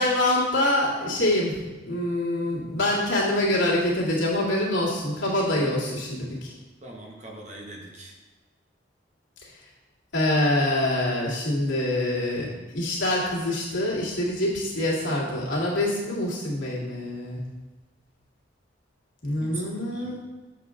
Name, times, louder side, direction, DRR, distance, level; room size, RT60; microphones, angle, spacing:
voice 1, 0.0-1.6 1.8-6.5 10.1-17.4 19.2-20.1, left 1 dB, 80° left, -5 dB, 2.1 m, -25 dB
voice 2, 6.8-8.1 19.4-20.1, right 2 dB, 35° right, 0 dB, 1.1 m, -41 dB
7.4 x 6.3 x 3.7 m, 1.2 s
head